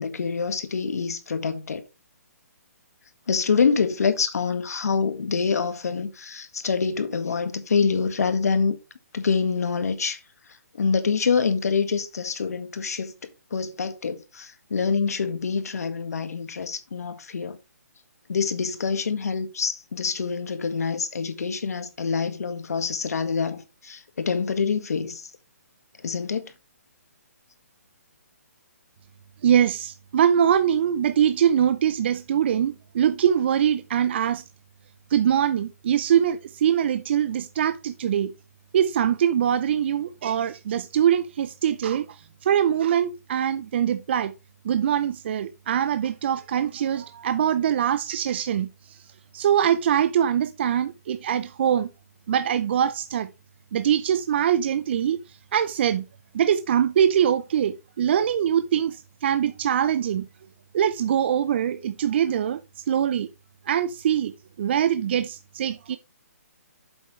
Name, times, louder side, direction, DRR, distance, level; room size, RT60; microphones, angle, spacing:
voice 1, 0.0-1.8 3.3-8.8 9.1-10.2 10.8-13.1 13.5-17.6 18.3-25.3 26.0-26.5, left 5 dB, 70° left, 1.8 m, -26 dB
voice 2, 29.4-34.4 35.1-38.3 38.7-44.3 44.6-48.7 49.3-51.9 52.3-53.3 53.7-55.2 55.5-56.0 56.3-60.2 60.7-62.6 62.9-63.3 63.7-64.3 64.6-66.0, right 9 dB, 40° right, 0.6 m, -23 dB
8.4 x 7.2 x 3.2 m
hypercardioid pair, 155°, 9 cm